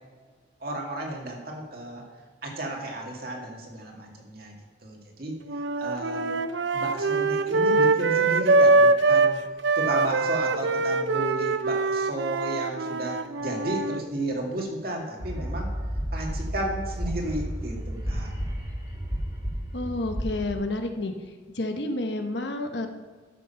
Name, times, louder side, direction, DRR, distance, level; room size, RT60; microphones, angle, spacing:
voice 1, 0.6-2.0 2.4-4.5 4.8-5.4 5.8-6.4 6.7-9.4 9.8-15.7 16.1-18.3, right 1 dB, 55° right, 0 dB, 2.3 m, -33 dB
sound 1, 5.5-9.3 9.6-14.0, right 3 dB, 75° right, 0.5 m, -23 dB
sound 2, 15.2-20.5, equal, 20° right, 2.5 m, -32 dB
voice 2, 19.7-21.1 21.5-22.9, left 2 dB, 65° left, 6 dB, 1.1 m, -29 dB
12.5 x 6.7 x 5.7 m, 1.5 s
head